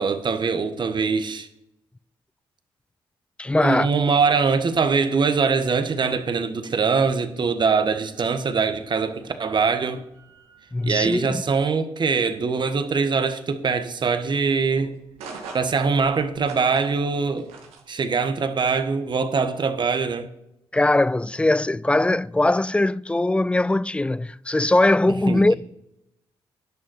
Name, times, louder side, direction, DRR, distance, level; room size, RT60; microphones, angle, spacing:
voice 1, 0.0-1.5 3.6-10.0 10.9-14.9 15.5-17.5 17.9-20.3 25.3-25.4, right 5 dB, 50° right, 1.3 m, -23 dB
voice 2, 3.4-3.9 10.7-11.4 20.7-25.5, left 2 dB, 10° left, 0.3 m, -20 dB
sound 1, 7.6-17.9, right 4 dB, 90° right, 1.9 m, -47 dB
11.0 x 6.5 x 6.3 m
supercardioid pair, 55°, 10 cm